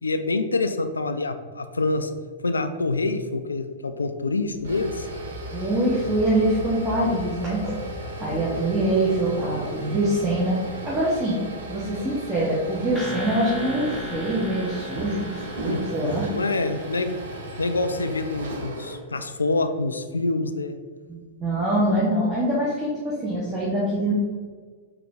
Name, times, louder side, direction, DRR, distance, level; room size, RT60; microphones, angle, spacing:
voice 1, 0.0-2.1 2.4-5.1 15.6-15.9 16.3-17.1 17.6-20.8, left 3 dB, 80° left, 8 dB, 0.3 m, -26 dB
sound 1, 4.5-19.0, right 1 dB, 65° right, 0.7 m, -36 dB
voice 2, 5.5-7.7 8.2-10.6 10.8-11.4 11.7-16.3 21.1-24.1, right 1 dB, 20° right, -8 dB, 1.0 m, -24 dB
sound 2, 12.9-17.9, left 2 dB, 5° left, 0.9 m, -36 dB
4.0 x 2.7 x 3.5 m, 1.5 s
figure-of-eight pair, 100°, 0 cm